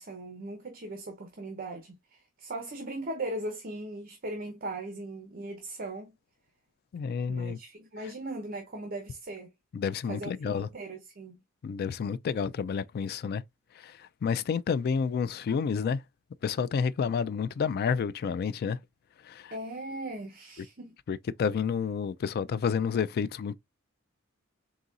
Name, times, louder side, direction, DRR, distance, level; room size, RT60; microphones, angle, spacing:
voice 1, 0.0-6.1 7.3-9.5 10.1-11.4 19.5-20.9, right 2 dB, 45° right, 0.8 m, -39 dB
voice 2, 6.9-7.6 9.7-10.7 11.6-13.4 13.8-16.0 16.4-18.8 19.2-19.5 21.1-23.5, left 6 dB, 50° left, 0.3 m, -30 dB
4.0 x 3.7 x 2.4 m
head